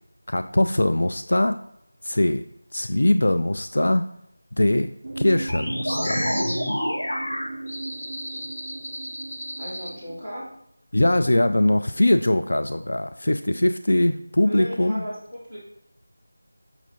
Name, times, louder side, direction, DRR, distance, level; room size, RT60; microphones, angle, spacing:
voice 1, 0.3-1.6 2.0-2.4 2.7-4.0 4.6-4.9 5.2-6.3 10.9-15.0, left 1 dB, 70° left, 9 dB, 0.4 m, -21 dB
sound 1, 5.0-10.3, right 2 dB, 50° right, 0.5 m, -36 dB
sound 2, 5.5-9.9, equal, 50° left, 1.3 m, -29 dB
voice 2, 9.6-10.5 14.4-15.6, equal, 15° left, -10 dB, 2.4 m, -35 dB
6.3 x 6.0 x 2.8 m, 0.75 s
figure-of-eight pair, 175°, 0 cm